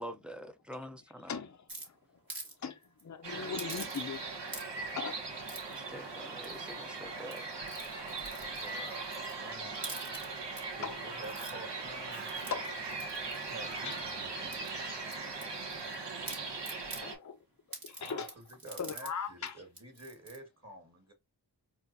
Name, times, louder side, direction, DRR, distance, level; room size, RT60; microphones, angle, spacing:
voice 1, 0.0-1.4 5.7-7.5, equal, ahead, 0.6 m, -45 dB
voice 2, 1.3-2.0 2.6-4.2 5.0-5.2 8.7-8.8 10.8-11.0 12.4-12.8 13.8-14.0 14.8-14.9 17.0-17.4 17.8-18.3 18.8-19.6, left 6 dB, 40° left, 0.7 m, -39 dB
sound 1, 1.7-2.5 2.8-3.0 3.6-4.2 4.5-4.9 5.5-5.8 6.4-6.8 7.2-9.4 9.7-10.6 11.1-11.5 12.1-14.1 14.5-15.9 16.2-17.0 17.7-19.1 19.5-19.6 19.7-20.4, right 2 dB, 50° right, 1.8 m, -47 dB
sound 2, 3.2-17.2, right 3 dB, 70° right, 1.4 m, -40 dB
voice 3, 8.4-9.8 10.8-12.3 13.5-14.7 17.9-21.1, right 1 dB, 35° right, 2.0 m, -49 dB
4.4 x 2.5 x 2.6 m
cardioid pair, 45°, 44 cm